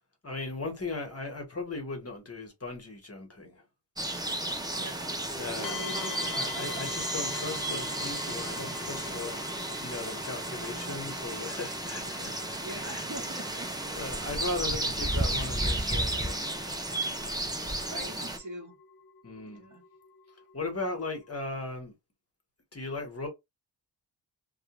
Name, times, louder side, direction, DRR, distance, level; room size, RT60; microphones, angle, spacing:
voice 1, 0.2-3.6 5.3-9.5 9.8-13.1 14.0-16.8 17.6-17.8 19.2-19.6 20.5-21.9 22.7-23.3, left 3 dB, 35° left, 1.1 m, -38 dB
sound 1, 4.0-18.4, right 1 dB, 10° right, 0.4 m, -33 dB
voice 2, 4.8-5.1 5.6-6.4 12.6-13.7 17.9-18.7 19.4-19.8, right 1 dB, 45° right, 1.0 m, -43 dB
sound 2, 5.6-21.3, left 7 dB, 55° left, 0.6 m, -46 dB
2.4 x 2.3 x 2.9 m
wide cardioid pair, 130°, 43 cm